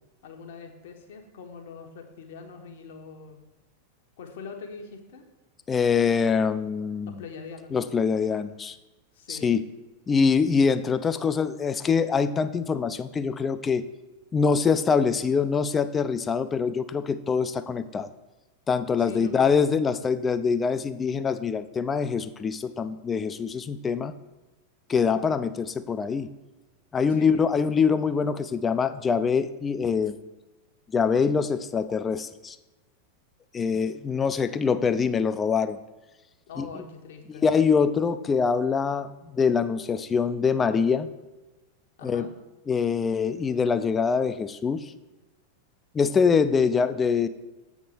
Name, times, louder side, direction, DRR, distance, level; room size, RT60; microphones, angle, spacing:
voice 1, 0.2-3.4 4.2-5.3 7.0-7.7 9.1-9.6 19.0-19.9 27.1-27.5 36.5-37.5 42.0-42.3, left 5 dB, 55° left, 4 dB, 1.1 m, -42 dB
voice 2, 5.7-7.1 7.7-8.8 9.3-9.6 10.1-13.8 14.3-18.1 18.7-24.1 24.9-26.3 26.9-30.2 30.9-32.6 33.5-35.8 36.6-36.7 37.4-41.1 42.0-42.3 42.7-44.8 45.9-47.3, left 5 dB, 20° left, 12 dB, 0.4 m, -24 dB
7.4 x 3.6 x 5.8 m, 1.1 s
figure-of-eight pair, 90°, 0 cm